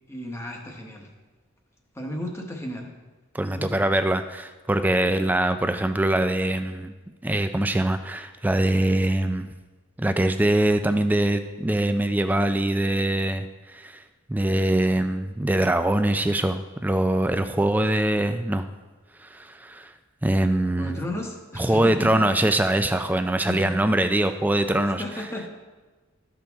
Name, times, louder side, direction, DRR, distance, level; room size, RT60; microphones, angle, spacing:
voice 1, 0.1-1.1 1.9-2.9 3.4-3.9 20.7-22.2 23.5-23.7 25.0-25.5, left 1 dB, 10° left, 1 dB, 1.0 m, -34 dB
voice 2, 3.3-6.9 7.2-9.5 10.0-14.0 14.3-18.7 19.2-19.9 20.2-21.0 21.6-25.0, right 1 dB, 10° right, 9 dB, 0.3 m, -23 dB
13.0 x 6.1 x 3.5 m, 1.3 s
head